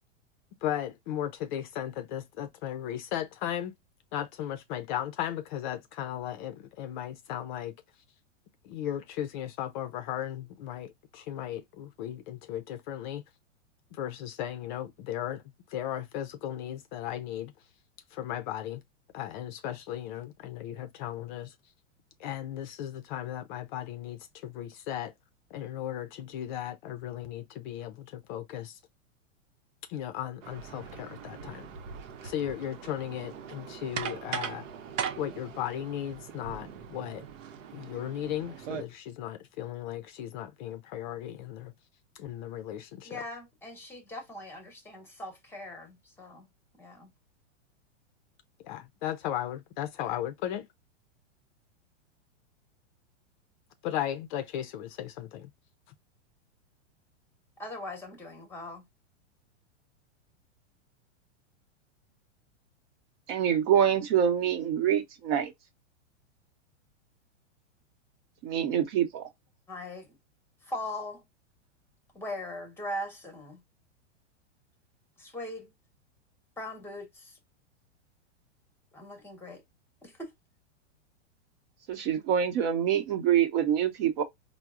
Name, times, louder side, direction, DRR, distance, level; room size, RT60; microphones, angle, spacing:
voice 1, 0.6-3.7 4.1-7.7 8.6-13.2 13.9-15.4 15.7-17.5 18.1-18.8 19.1-21.5 22.2-25.1 25.5-28.8 29.9-31.7 32.2-34.7 35.2-37.2 37.7-41.7 42.1-43.2 48.6-50.7 53.8-55.5, left 11 dB, 40° left, 0.5 m, -36 dB
sound 1, 30.4-38.8, right 7 dB, 85° right, 0.8 m, -40 dB
voice 2, 43.0-46.5 46.8-47.1 57.6-58.8 69.7-70.2 70.6-71.2 72.1-73.6 75.2-75.7 76.6-77.4 78.9-79.6 80.0-80.3, left 1 dB, 5° left, 0.9 m, -40 dB
voice 3, 63.3-65.5 68.4-69.3 81.9-84.2, right 9 dB, 50° right, 0.9 m, -25 dB
4.4 x 2.0 x 2.4 m
hypercardioid pair, 130°, 37 cm